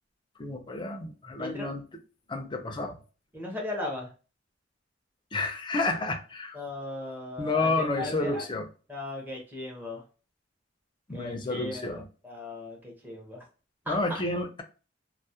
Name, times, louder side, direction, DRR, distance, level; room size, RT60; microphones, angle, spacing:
voice 1, 0.4-1.8 2.3-3.0 5.3-6.6 7.4-8.7 11.1-12.1 13.9-14.6, left 2 dB, 25° left, 0.4 m, -30 dB
voice 2, 1.4-1.7 3.3-4.1 6.5-8.4 8.9-10.0 11.1-11.9 12.2-13.4 13.9-14.2, left 2 dB, 10° right, 0.7 m, -37 dB
2.2 x 2.0 x 2.7 m
head